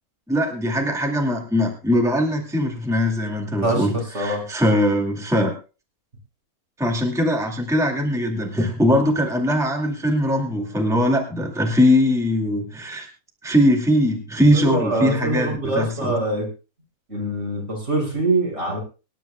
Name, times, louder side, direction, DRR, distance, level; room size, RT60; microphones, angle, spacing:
voice 1, 0.3-5.5 6.8-13.1 13.4-16.1, left 1 dB, ahead, 1 dB, 2.2 m, -21 dB
voice 2, 3.6-4.4 14.5-16.5 17.1-18.8, right 2 dB, 50° right, 0 dB, 5.8 m, -24 dB
25.0 x 11.0 x 2.2 m, 0.31 s
omnidirectional pair, 1.5 m